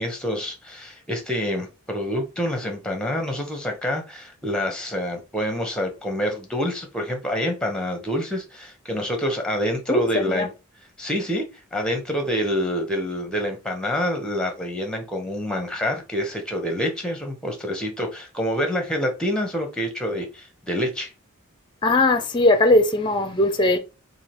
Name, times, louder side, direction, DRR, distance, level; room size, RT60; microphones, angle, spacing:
voice 1, 0.0-10.5 11.0-21.1, equal, 5° left, 1.1 m, -27 dB
voice 2, 9.9-10.5 21.8-23.8, left 2 dB, 20° left, 0.6 m, -19 dB
3.7 x 2.8 x 4.5 m
head